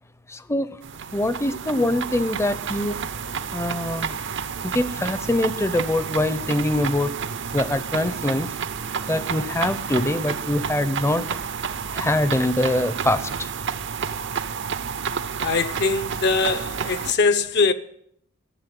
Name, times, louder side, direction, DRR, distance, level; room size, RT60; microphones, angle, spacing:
voice 1, 0.3-0.8 1.1-3.0 3.5-4.2 4.6-7.1 7.5-8.5 9.1-11.3 11.9-13.5, left 1 dB, 10° left, 0.7 m, -24 dB
sound 1, 0.8-17.1, right 6 dB, 55° right, 0.7 m, -30 dB
voice 2, 15.4-17.7, left 4 dB, 50° left, 0.8 m, -22 dB
14.5 x 7.5 x 9.2 m
head